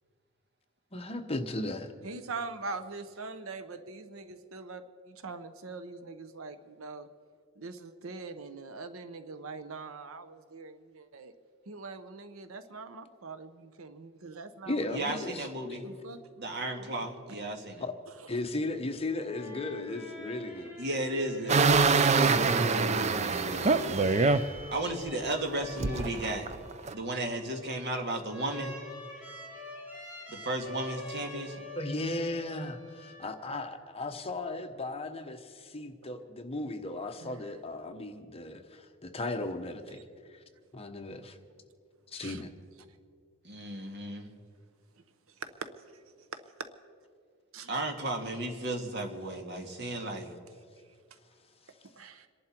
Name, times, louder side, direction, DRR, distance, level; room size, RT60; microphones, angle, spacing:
voice 1, 0.9-1.9 14.7-15.5 15.8-15.9 17.8-17.9 18.3-20.7 31.7-40.0 40.3-40.4 40.7-41.4 42.1-42.5, left 2 dB, 30° left, 6 dB, 1.0 m, -36 dB
voice 2, 2.0-7.1 7.6-11.3 11.7-15.3 15.8-16.2 16.8-17.0 18.1-18.4 23.1-24.5 37.2-37.5 42.1-42.4 45.3-46.0 46.3-46.4 47.5-47.8 51.1-51.2 51.9-52.3, right 4 dB, 80° right, 11 dB, 0.8 m, -43 dB
voice 3, 14.9-15.9 16.4-17.8 20.8-21.7 22.2-22.9 24.7-26.5 26.9-28.8 30.3-31.6 43.4-44.3 47.7-50.3, right 1 dB, 55° right, 4 dB, 1.8 m, -34 dB
sound 1, 19.0-33.7, left 3 dB, 5° right, 4.8 m, -45 dB
sound 2, 21.5-24.7 25.1-25.2 25.8-26.9, right 4 dB, 35° right, 0.5 m, -24 dB
27.0 x 11.0 x 4.5 m, 2.1 s
head